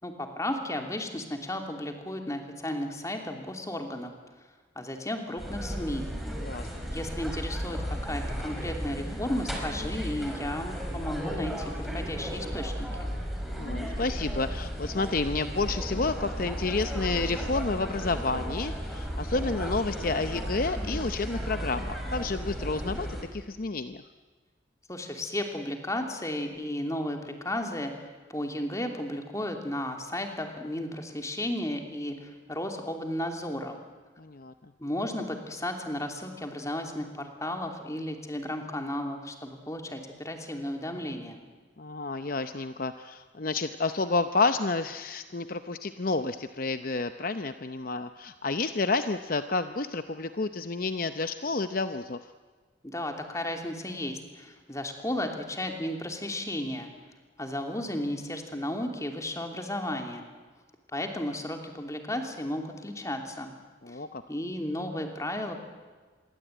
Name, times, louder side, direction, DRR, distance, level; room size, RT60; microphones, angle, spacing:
voice 1, 0.0-4.1 4.7-6.1 6.9-13.1 24.9-33.8 34.8-41.4 52.8-56.9 57.4-60.2 60.9-63.5 63.9-64.0 64.3-65.6, left 1 dB, 15° left, 4 dB, 2.9 m, -34 dB
sound 1, 5.4-23.2, equal, ahead, 4.9 m, -34 dB
voice 2, 13.6-23.1 23.3-24.0 34.2-34.5 41.8-52.2 63.8-64.2, left 3 dB, 50° left, 9 dB, 0.7 m, -30 dB
26.5 x 23.0 x 9.1 m, 1.4 s
head